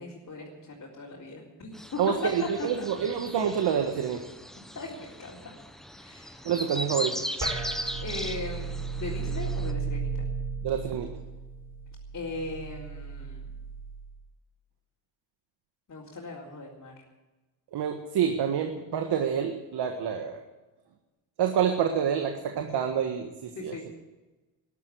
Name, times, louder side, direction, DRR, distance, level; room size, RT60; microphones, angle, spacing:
voice 1, 0.0-2.3 2.6-2.9 4.7-5.5 6.0-6.4 8.0-10.3 12.1-13.5 15.9-16.9 22.6-22.7 23.6-23.9, left 3 dB, 35° left, -5 dB, 4.1 m, -38 dB
sound 1, 1.7-9.7, equal, ahead, 1.1 m, -38 dB
voice 2, 2.0-4.2 6.4-7.2 10.6-11.1 17.7-20.4 21.4-23.7, right 8 dB, 60° right, 5 dB, 1.7 m, -27 dB
sound 2, 7.4-14.1, right 5 dB, 40° right, 6.8 m, -35 dB
13.5 x 11.5 x 9.4 m, 1.1 s
cardioid pair, 90°, 45 cm